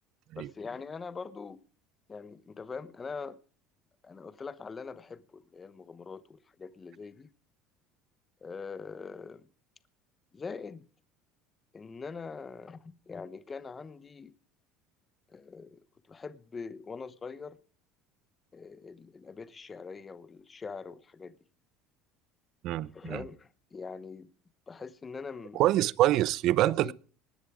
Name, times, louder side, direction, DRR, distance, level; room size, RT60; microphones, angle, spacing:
voice 1, 0.3-1.6 2.1-3.4 4.0-7.3 8.4-9.5 10.3-10.9 11.7-14.3 15.3-15.8 16.1-17.6 18.5-21.3 22.8-24.3 24.7-25.6 26.6-26.9, left 5 dB, 20° left, 1.0 m, -43 dB
voice 2, 22.6-23.2 25.6-26.9, right 14 dB, 50° right, 0.6 m, -25 dB
20.0 x 10.5 x 5.0 m
cardioid pair, 150°, 0 cm